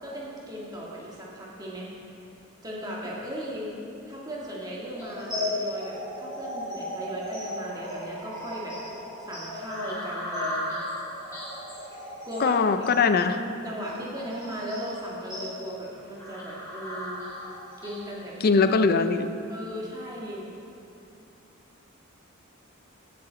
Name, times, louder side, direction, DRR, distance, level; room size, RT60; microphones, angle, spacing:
voice 1, 0.0-1.9 2.6-3.7 4.1-8.8 9.2-10.8 12.2-12.6 13.2-17.3 17.8-18.4 19.5-20.5, equal, 20° right, -5 dB, 1.9 m, -37 dB
sound 1, 5.0-18.0, left 1 dB, 15° left, 2.3 m, -36 dB
voice 2, 12.4-13.4 18.4-19.3, left 4 dB, 45° left, 10 dB, 0.4 m, -21 dB
15.5 x 6.9 x 4.0 m, 2.8 s
head